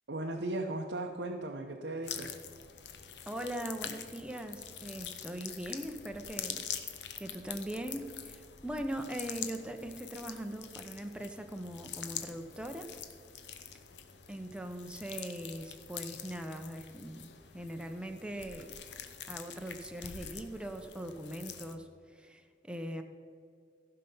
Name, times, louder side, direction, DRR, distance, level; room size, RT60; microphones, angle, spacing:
voice 1, 0.1-2.4, right 2 dB, 90° right, 1 dB, 0.8 m, -37 dB
sound 1, 2.0-21.8, left 8 dB, 80° left, 0.8 m, -45 dB
voice 2, 3.3-6.6 7.2-13.0 14.3-18.8 19.3-23.0, right 1 dB, 5° right, 5 dB, 0.7 m, -41 dB
15.0 x 5.7 x 5.6 m, 2.3 s
head